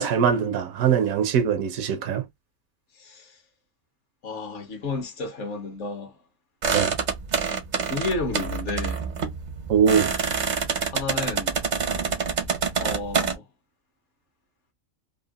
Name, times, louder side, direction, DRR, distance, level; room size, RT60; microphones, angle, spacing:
voice 1, 0.0-2.3 6.7-7.0 9.7-10.1, right 7 dB, 85° right, 1.1 m, -22 dB
voice 2, 3.0-3.4 4.2-6.2 7.8-9.0 10.4-10.5 10.9-11.6 12.8-13.5, left 3 dB, 60° left, 1.1 m, -32 dB
sound 1, 6.6-13.3, right 5 dB, 50° right, 0.5 m, -27 dB
3.4 x 2.2 x 2.3 m
omnidirectional pair, 1.4 m